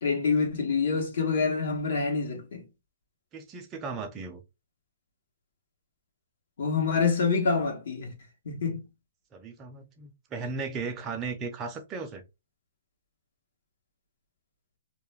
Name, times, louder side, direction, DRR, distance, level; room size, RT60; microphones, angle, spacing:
voice 1, 0.0-2.6 6.6-8.1 8.5-8.8, left 5 dB, 70° left, 1.0 m, -26 dB
voice 2, 3.3-4.4 9.3-12.2, right 4 dB, 20° right, 0.5 m, -36 dB
2.4 x 2.1 x 3.1 m
hypercardioid pair, 160°, 0 cm